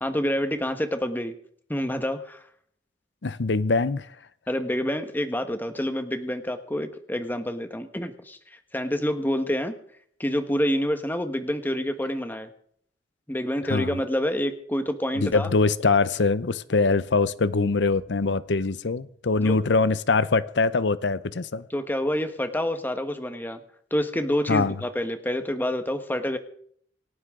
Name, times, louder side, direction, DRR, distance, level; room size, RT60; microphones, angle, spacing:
voice 1, 0.0-1.3 1.7-2.4 4.5-8.4 8.7-9.7 10.2-12.5 13.3-15.5 19.4-19.5 21.7-23.6 23.9-26.4, equal, 10° left, 1.4 m, -27 dB
voice 2, 3.2-4.1 13.7-14.0 15.2-21.6 24.5-24.8, left 3 dB, 85° left, 0.7 m, -23 dB
27.0 x 11.5 x 3.8 m
head